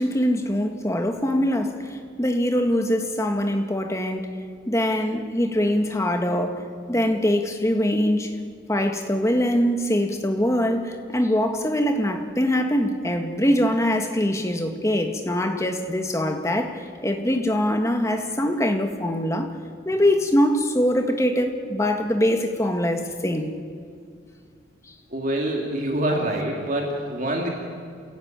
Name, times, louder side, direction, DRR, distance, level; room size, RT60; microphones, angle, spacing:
voice 1, 0.0-4.4 4.7-8.3 8.7-19.5 19.9-23.6, equal, 15° left, 5 dB, 1.7 m, -23 dB
voice 2, 25.1-27.5, right 1 dB, 45° right, 0 dB, 2.6 m, -25 dB
28.5 x 16.5 x 8.9 m, 2.2 s
head